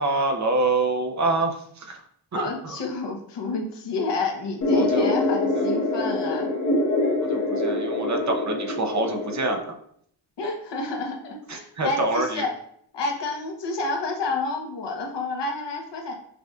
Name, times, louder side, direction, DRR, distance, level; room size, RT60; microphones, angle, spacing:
voice 1, 0.0-2.0 2.3-2.8 4.7-5.2 7.2-9.7 11.5-12.5, right 2 dB, 40° right, 4 dB, 0.6 m, -26 dB
voice 2, 2.3-6.5 10.4-12.5 12.9-16.1, left 3 dB, 70° left, 1 dB, 0.9 m, -29 dB
sound 1, 4.6-9.6, left 2 dB, 45° left, 1.1 m, -24 dB
5.8 x 2.5 x 2.3 m, 0.65 s
cardioid pair, 105°, 43 cm